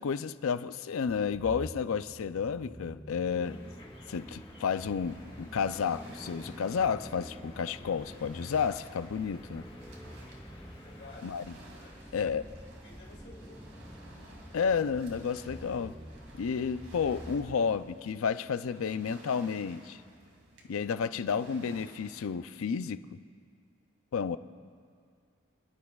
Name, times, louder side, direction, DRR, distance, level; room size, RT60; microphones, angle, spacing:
voice 1, 0.0-3.6 4.1-9.6 11.2-11.4 12.1-12.5 14.5-15.9 16.4-20.0 20.7-23.0 24.1-24.4, left 6 dB, 75° left, 13 dB, 0.4 m, -31 dB
sound 1, 1.1-17.9, equal, ahead, 0.5 m, -48 dB
sound 2, 3.4-11.1, left 1 dB, 25° left, 1.6 m, -55 dB
Waves surf, 5.0-22.3, right 1 dB, 70° right, 2.2 m, -55 dB
voice 2, 10.8-11.4 11.8-12.3 12.7-13.6, left 2 dB, 55° left, -3 dB, 2.6 m, -52 dB
27.5 x 11.0 x 2.3 m, 2.2 s
head